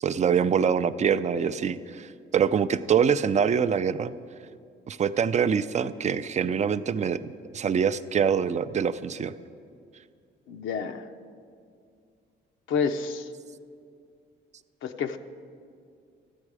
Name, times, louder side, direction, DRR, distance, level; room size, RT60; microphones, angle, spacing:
voice 1, 0.0-4.1 4.9-7.2 7.5-9.3, right 7 dB, 35° right, 14 dB, 0.4 m, -24 dB
voice 2, 10.5-11.1 12.7-13.3 14.8-15.2, left 6 dB, 80° left, 6 dB, 0.6 m, -29 dB
13.5 x 8.9 x 4.8 m, 2.3 s
cardioid pair, 90°, 20 cm